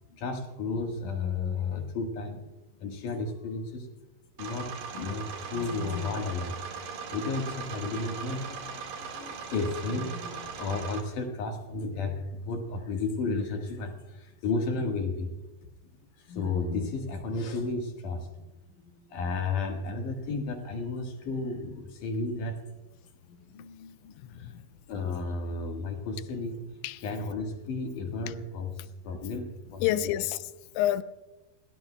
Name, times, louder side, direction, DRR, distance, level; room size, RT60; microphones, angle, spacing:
voice 1, 0.1-2.4 2.8-3.9 4.4-15.4 16.2-18.4 18.8-22.6 23.3-24.6 24.9-26.8 27.0-29.8, left 3 dB, 60° left, 2.5 m, -33 dB
sound 1, 4.4-11.0, right 5 dB, 60° right, 3.0 m, -39 dB
voice 2, 24.1-24.7 26.8-27.0 29.8-31.0, left 13 dB, 90° left, 3.0 m, -29 dB
29.0 x 19.0 x 2.2 m
omnidirectional pair, 5.1 m